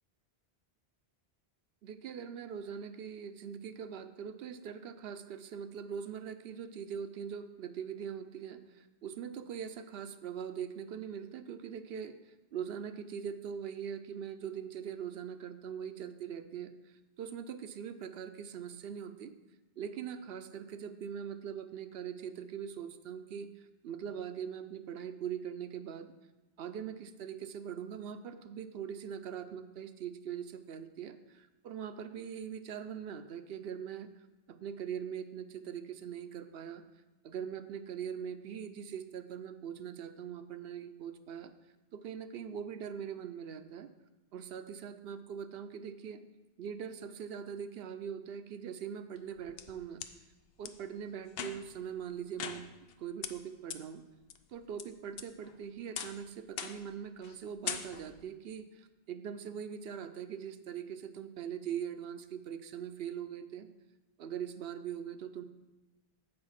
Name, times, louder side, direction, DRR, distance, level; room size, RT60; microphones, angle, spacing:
voice 1, 1.8-16.7 17.2-19.3 19.8-26.1 26.6-34.1 34.5-36.8 37.2-41.5 41.9-43.9 44.3-46.2 46.6-50.0 50.6-52.7 53.0-54.0 54.5-63.7 64.2-65.4, right 8 dB, 75° right, 10 dB, 0.8 m, -42 dB
sound 1, 49.2-50.1 50.6-50.7 51.3-51.8 52.4-52.9 53.2-53.3 53.7-53.8 54.3-54.8 55.2-55.6 56.0-56.2 56.6-56.9 57.2-57.4 57.7-58.2, left 8 dB, 70° left, 0.8 m, -41 dB
8.2 x 5.2 x 5.8 m, 1.1 s
omnidirectional pair, 1.0 m